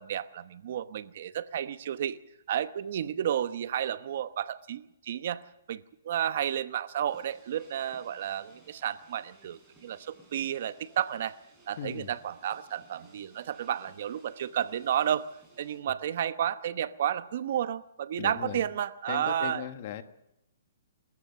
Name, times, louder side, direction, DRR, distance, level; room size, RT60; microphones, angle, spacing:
voice 1, 0.0-2.2 2.5-5.4 5.7-11.4 11.7-15.3 15.6-19.7, right 10 dB, 50° right, 13 dB, 0.9 m, -32 dB
sound 1, 7.1-15.8, right 2 dB, 5° right, 6.2 m, -60 dB
voice 2, 11.8-12.1 18.2-18.6 19.1-20.0, left 10 dB, 40° left, 10 dB, 1.4 m, -37 dB
27.0 x 14.0 x 6.9 m, 0.88 s
hypercardioid pair, 160°, 0 cm